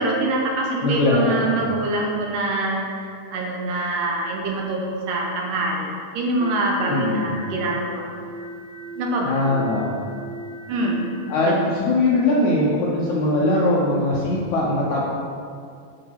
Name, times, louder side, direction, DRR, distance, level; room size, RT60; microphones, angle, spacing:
voice 1, 0.0-8.1 9.0-9.4 10.7-11.1 11.4-11.6, right 2 dB, 70° right, -1 dB, 2.4 m, -25 dB
voice 2, 0.8-1.6 6.9-7.4 9.2-9.9 11.3-15.0, left 2 dB, 70° left, -4 dB, 1.8 m, -21 dB
sound 1, 6.4-11.4, right 2 dB, 90° right, 3.3 m, -37 dB
8.9 x 5.2 x 5.8 m, 2.3 s
omnidirectional pair, 4.3 m